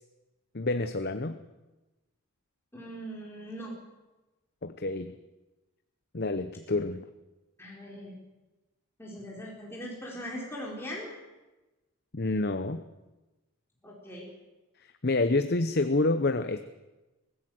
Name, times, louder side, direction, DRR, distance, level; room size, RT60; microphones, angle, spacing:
voice 1, 0.5-1.4 4.6-5.1 6.1-7.0 12.1-12.8 15.0-16.6, left 2 dB, 45° left, 9 dB, 0.8 m, -28 dB
voice 2, 2.7-3.7 7.6-8.1 9.0-11.1 13.8-14.3, equal, 10° left, -4 dB, 4.5 m, -40 dB
24.0 x 15.5 x 7.9 m, 1.1 s
head